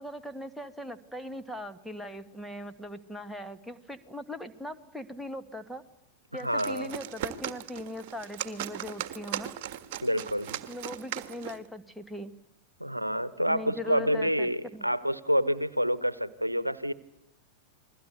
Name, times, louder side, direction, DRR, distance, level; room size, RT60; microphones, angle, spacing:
voice 1, 0.0-5.8 6.3-9.5 10.7-12.3 13.5-14.9, left 1 dB, ahead, 7 dB, 1.8 m, -40 dB
sound 1, 6.4-11.7, right 11 dB, 50° right, 1.6 m, -38 dB
voice 2, 6.4-6.9 10.0-10.6 12.8-16.9, equal, 90° right, 18 dB, 1.0 m, -28 dB
29.5 x 21.5 x 8.3 m, 0.77 s
figure-of-eight pair, 90°, 0 cm